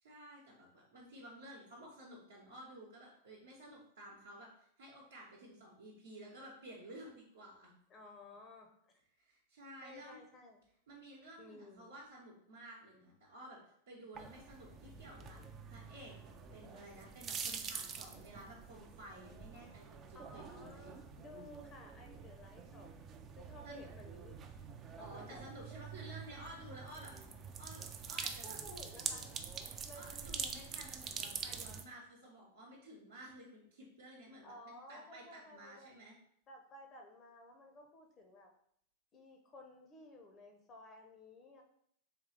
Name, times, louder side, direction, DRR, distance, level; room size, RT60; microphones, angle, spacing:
voice 1, 0.0-7.7 9.2-10.2 10.9-13.6 13.9-15.4 15.7-20.9 23.6-23.8 25.0-27.1 27.6-28.6 29.9-36.2, right 1 dB, 70° right, -5 dB, 0.9 m, -53 dB
voice 2, 7.9-8.7 8.9-9.0 9.8-10.6 11.4-11.9 20.1-22.9 23.3-24.4 25.0-25.4 28.4-29.3 29.8-30.3 34.4-35.9 36.5-38.5 39.1-41.6, left 1 dB, 25° left, 3 dB, 0.6 m, -55 dB
sound 1, 14.1-31.8, right 6 dB, 30° right, 0.4 m, -46 dB
3.6 x 3.0 x 3.2 m, 0.70 s
figure-of-eight pair, 90°, 0 cm